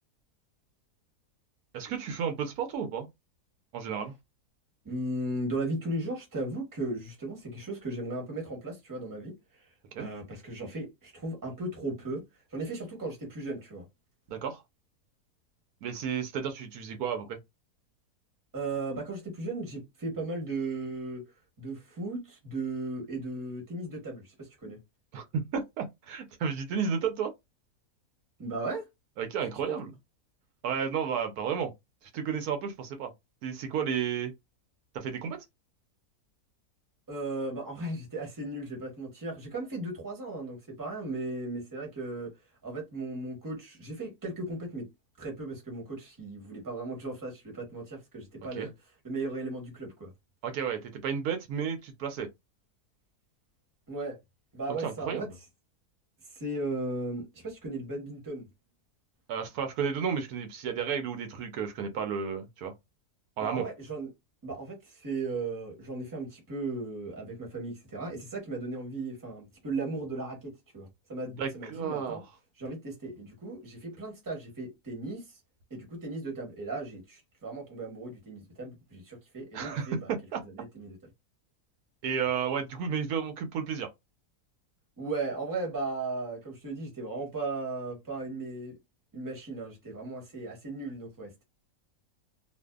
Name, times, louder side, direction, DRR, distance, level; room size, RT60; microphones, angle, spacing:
voice 1, 1.7-3.1 3.7-4.1 9.9-10.1 14.3-14.6 15.8-17.4 25.1-27.3 29.2-29.9 30.6-31.7 32.0-33.1 33.4-34.3 34.9-35.4 48.6-48.7 50.4-52.3 54.8-55.2 59.3-62.7 63.4-63.6 71.4-72.2 79.5-80.4 82.0-83.9, right 7 dB, 80° right, 1.1 m, -32 dB
voice 2, 4.8-9.7 10.0-12.2 12.5-13.9 18.5-21.3 21.6-24.8 28.4-28.9 29.7-29.8 37.1-42.3 42.6-44.9 45.2-48.7 49.0-50.1 53.9-54.2 54.5-55.3 56.3-58.5 63.4-64.1 64.4-72.2 72.6-75.4 75.7-80.1 80.4-81.0 85.0-88.8 89.1-91.4, right 2 dB, 15° right, 0.9 m, -36 dB
2.5 x 2.4 x 2.3 m
omnidirectional pair, 1.6 m